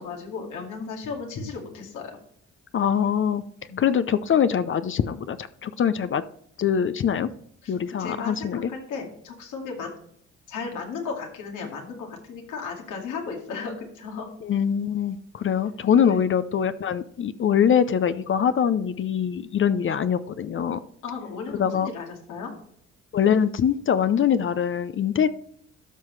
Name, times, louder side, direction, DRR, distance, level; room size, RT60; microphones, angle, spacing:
voice 1, 0.0-2.1 3.7-3.8 7.6-9.9 10.5-14.3 16.1-16.2 21.0-22.5, left 5 dB, 85° left, 1 dB, 2.3 m, -35 dB
voice 2, 2.7-3.4 3.8-6.2 6.6-7.3 7.7-8.7 14.4-20.8 21.6-21.9 23.1-25.3, left 8 dB, 40° left, 13 dB, 0.5 m, -23 dB
12.5 x 5.6 x 3.2 m, 0.66 s
cardioid pair, 90°, 30 cm